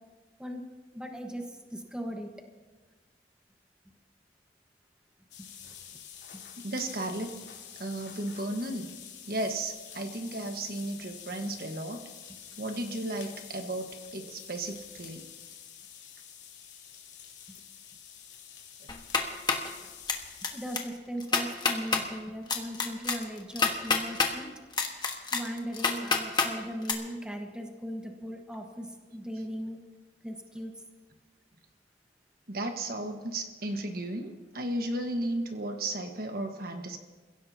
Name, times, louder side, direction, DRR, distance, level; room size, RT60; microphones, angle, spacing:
voice 1, 0.9-2.3 5.4-5.5 20.5-24.5 25.3-28.9 29.1-29.8 30.2-30.7, equal, 5° right, 2 dB, 1.3 m, -38 dB
sound 1, 5.3-20.8, left 8 dB, 85° left, 3.0 m, -48 dB
voice 2, 6.6-7.3 7.8-8.9 9.3-12.0 12.6-13.9 14.1-15.2 32.5-37.0, right 1 dB, 55° right, 4 dB, 1.5 m, -34 dB
sound 2, 18.9-19.7 20.1-20.5 20.7-20.8 21.2-22.0 22.5-24.3 24.7-26.5 26.8-26.9, left 4 dB, 25° left, 1.4 m, -27 dB
28.5 x 16.0 x 2.9 m, 1.3 s
head